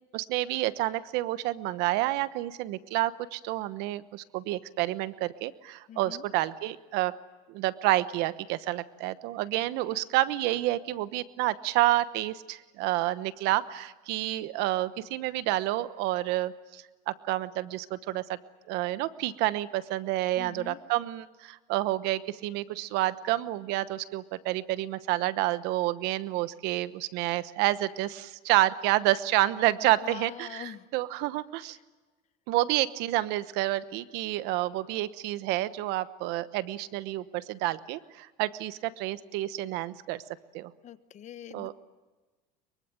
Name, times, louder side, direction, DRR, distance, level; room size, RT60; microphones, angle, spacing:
voice 1, 0.1-7.1 7.5-18.4 18.7-31.8 32.5-40.2 40.5-40.7 41.5-41.7, right 16 dB, 70° right, 15 dB, 1.0 m, -29 dB
voice 2, 5.9-6.2 20.4-20.8 30.0-30.8 40.8-41.7, left 10 dB, 40° left, 12 dB, 1.3 m, -43 dB
23.5 x 23.5 x 8.9 m, 1.2 s
supercardioid pair, 120°, 18 cm